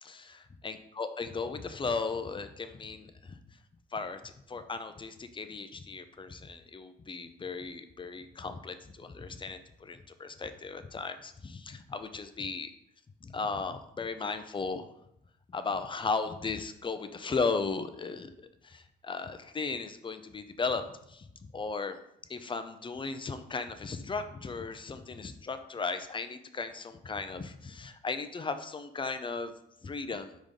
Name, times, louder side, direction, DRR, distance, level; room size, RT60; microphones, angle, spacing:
voice 1, 0.6-3.4 3.9-12.7 13.2-14.9 15.5-18.3 18.6-21.3 21.5-22.0 22.3-29.5 29.8-30.4, left 4 dB, 25° left, 9 dB, 0.6 m, -36 dB
5.0 x 3.7 x 5.2 m, 0.77 s
cardioid pair, 90°, 20 cm